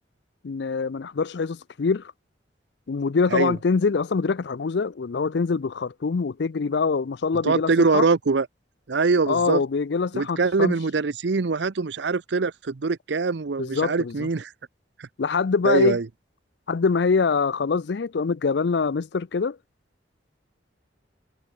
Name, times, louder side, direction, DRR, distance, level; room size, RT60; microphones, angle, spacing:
voice 1, 0.4-2.1 2.9-8.0 9.3-10.7 13.6-14.3 15.2-16.0 16.7-19.6, left 4 dB, 60° left, 0.5 m, -24 dB
voice 2, 7.4-8.5 8.9-9.6 10.1-14.5 15.0-15.1 15.6-16.1, right 4 dB, 65° right, 0.6 m, -23 dB
head